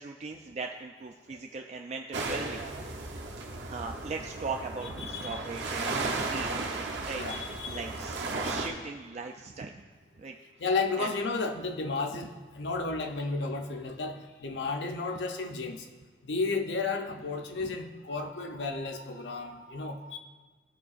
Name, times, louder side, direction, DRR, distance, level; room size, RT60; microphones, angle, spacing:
voice 1, 0.0-2.7 3.7-6.5 7.1-7.2 7.6-9.8 10.2-10.4 11.0-11.1, right 4 dB, 40° right, 3 dB, 0.3 m, -39 dB
sound 1, 2.1-8.7, right 3 dB, 90° right, 0.9 m, -35 dB
voice 2, 5.0-5.4 7.1-7.8 10.6-15.8 16.3-20.2, left 3 dB, 80° left, 4 dB, 0.6 m, -33 dB
13.5 x 4.7 x 2.5 m, 1.5 s
head